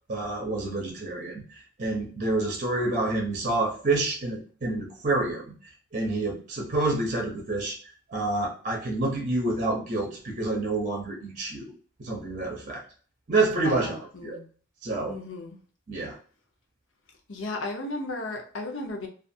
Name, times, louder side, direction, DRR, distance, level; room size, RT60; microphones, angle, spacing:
voice 1, 0.1-7.8 8.1-11.7 12.0-12.8 13.3-14.4 14.8-15.2 15.9-16.2, right 2 dB, 40° right, -1 dB, 0.7 m, -28 dB
voice 2, 13.6-14.5 15.1-15.6 17.3-19.1, left 2 dB, 65° left, 2 dB, 0.7 m, -34 dB
2.4 x 2.4 x 2.6 m, 0.41 s
head